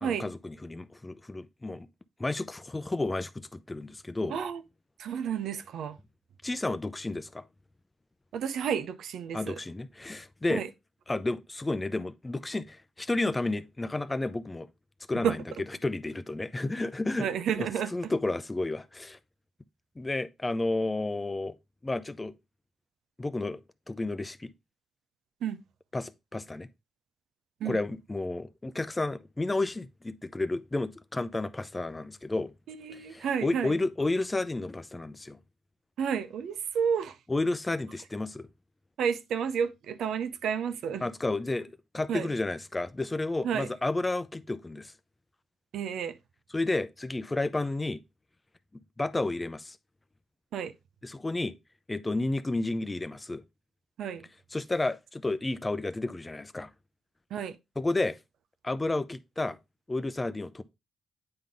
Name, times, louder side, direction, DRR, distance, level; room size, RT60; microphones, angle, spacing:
voice 1, 0.0-1.9 2.2-4.4 6.4-7.4 9.3-10.6 11.1-14.7 15.1-15.4 15.8-17.3 17.6-19.2 20.0-21.5 21.8-22.3 23.2-23.6 23.9-24.5 25.9-26.7 27.7-32.5 32.9-35.4 37.3-38.5 41.0-44.9 46.5-48.0 49.0-49.8 51.0-51.5 51.9-53.4 54.5-56.7 57.8-58.2 58.6-59.6 59.9-60.6, left 2 dB, 20° left, 0.5 m, -31 dB
voice 2, 4.3-4.6 5.0-6.0 8.3-9.6 10.5-10.7 15.2-15.4 17.2-17.9 25.4-25.6 27.6-27.8 32.7-33.8 36.0-37.2 39.0-41.0 42.1-42.3 43.4-43.7 45.7-46.2 50.5-50.7 54.0-54.2 57.3-57.6, right 7 dB, 90° right, 0.5 m, -31 dB
8.7 x 3.8 x 3.5 m
cardioid pair, 75°, 0 cm